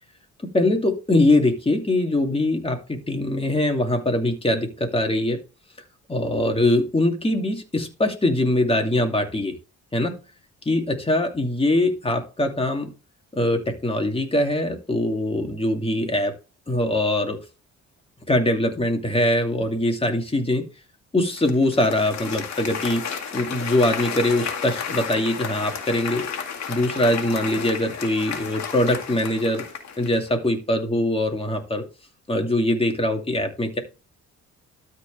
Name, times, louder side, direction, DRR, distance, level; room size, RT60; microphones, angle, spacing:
voice 1, 0.4-5.4 6.1-9.5 9.9-10.2 10.6-12.9 13.3-16.4 16.7-17.4 18.3-20.7 21.1-23.0 23.3-26.2 26.7-29.6 30.0-31.8 32.3-33.8, left 1 dB, 20° left, 4 dB, 2.7 m, -22 dB
Applause, 21.4-30.3, left 6 dB, 60° left, 2.2 m, -32 dB
13.0 x 4.7 x 3.5 m, 0.31 s
cardioid pair, 90°, 30 cm